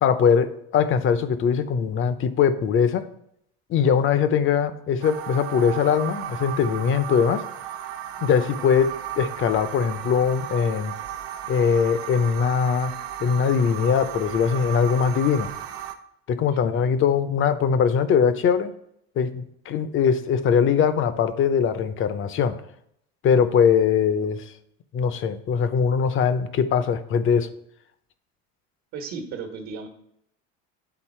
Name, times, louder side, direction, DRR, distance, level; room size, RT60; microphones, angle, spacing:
voice 1, 0.0-3.1 3.7-7.4 8.2-10.9 11.5-12.9 13.2-15.5 16.3-18.7 19.2-22.6 23.2-24.4 24.9-27.5, left 7 dB, 40° left, 13 dB, 0.7 m, -21 dB
sound 1, 5.0-15.9, right 11 dB, 85° right, 0.8 m, -35 dB
voice 2, 16.5-16.9 28.9-29.9, right 5 dB, 60° right, 3 dB, 1.3 m, -36 dB
9.2 x 3.9 x 4.4 m, 0.75 s
supercardioid pair, 110°, 31 cm